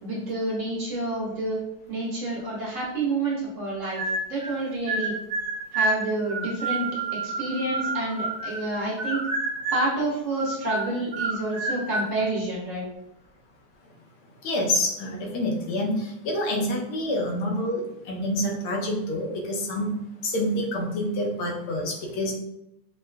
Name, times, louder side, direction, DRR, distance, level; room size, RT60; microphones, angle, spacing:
voice 1, 0.0-1.6 1.9-4.0 4.3-5.1 5.7-9.3 9.7-12.8, right 2 dB, 45° right, -5 dB, 1.1 m, -29 dB
sound 1, 3.9-4.6 4.9-8.7 9.0-10.0 10.3-12.1, right 2 dB, 90° right, 0.7 m, -29 dB
voice 2, 14.4-20.0 20.2-22.4, left 1 dB, 80° left, -1 dB, 1.6 m, -27 dB
5.6 x 2.2 x 2.3 m, 0.84 s
omnidirectional pair, 2.3 m